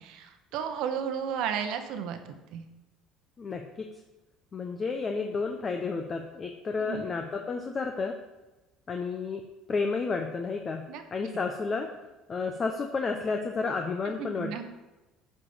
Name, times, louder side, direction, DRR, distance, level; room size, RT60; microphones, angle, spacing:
voice 1, 0.0-2.2 2.5-2.6 6.8-7.0 10.9-11.0 14.2-14.6, right 8 dB, 70° right, 7 dB, 1.1 m, -33 dB
voice 2, 3.4-3.9 4.5-8.1 8.9-9.4 9.7-11.9 12.3-14.6, left 4 dB, 30° left, 3 dB, 0.8 m, -31 dB
9.7 x 5.1 x 5.6 m, 1.1 s
cardioid pair, 110°, 0 cm